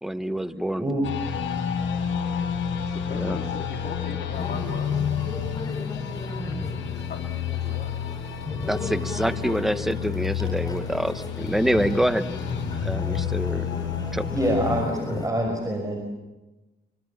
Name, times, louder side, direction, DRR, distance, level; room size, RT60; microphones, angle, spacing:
voice 1, 0.0-0.9 3.1-3.4 8.7-12.3 12.7-13.7 14.1-14.3, equal, ahead, 12 dB, 1.2 m, -26 dB
sound 1, 1.0-14.8, left 8 dB, 75° left, 5.5 m, -30 dB
voice 2, 1.7-2.1 2.8-5.1 5.6-6.1 6.8-8.0, left 6 dB, 55° left, 1 dB, 3.4 m, -39 dB
sound 2, 4.3-15.3, left 2 dB, 20° left, 4.5 m, -35 dB
voice 3, 14.3-16.0, right 1 dB, 15° right, 2 dB, 5.7 m, -26 dB
25.5 x 24.0 x 7.3 m, 1.1 s
cardioid pair, 90°, 20 cm